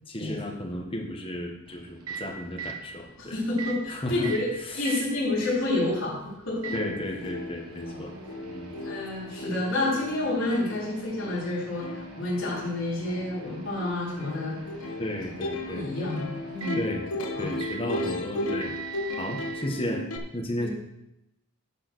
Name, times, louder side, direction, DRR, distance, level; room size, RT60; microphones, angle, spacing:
voice 1, 0.1-3.4 3.9-4.3 4.6-5.0 6.7-8.1 8.4-8.7 15.0-15.8 16.8-17.0 17.4-18.7 19.1-20.0 20.3-20.7, left 1 dB, 25° left, 0 dB, 1.5 m, -33 dB
Microwave oven, 1.7-19.7, right 4 dB, 85° right, 1.2 m, -43 dB
voice 2, 3.3-6.7 8.8-14.6 15.7-16.8 17.3-17.5 20.6-20.7, left 2 dB, 60° left, -7 dB, 3.9 m, -29 dB
Plucked string instrument, 6.3-6.4 6.7-20.2, left 1 dB, 75° left, 1.3 m, -36 dB
11.0 x 5.0 x 6.3 m, 0.90 s
head